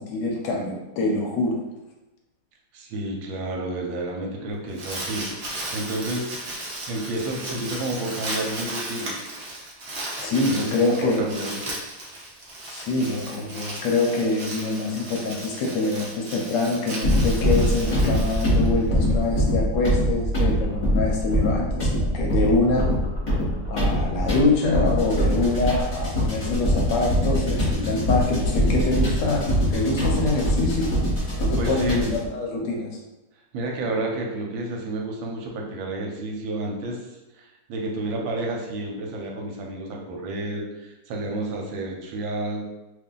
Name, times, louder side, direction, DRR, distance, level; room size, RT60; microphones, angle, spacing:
voice 1, 0.0-1.6 10.2-11.5 12.6-22.9 23.7-30.9 31.4-33.0, left 3 dB, 75° left, -1 dB, 1.2 m, -25 dB
voice 2, 2.7-9.1 10.5-11.6 31.6-32.1 33.5-37.1 37.4-42.6, right 2 dB, 80° right, 0 dB, 1.4 m, -30 dB
Crumpling crinkling, 4.5-19.1, right 1 dB, 65° right, 0.5 m, -35 dB
sound 1, 17.0-32.3, equal, 30° left, 1.0 m, -23 dB
2.9 x 2.6 x 3.7 m, 1.0 s
omnidirectional pair, 2.1 m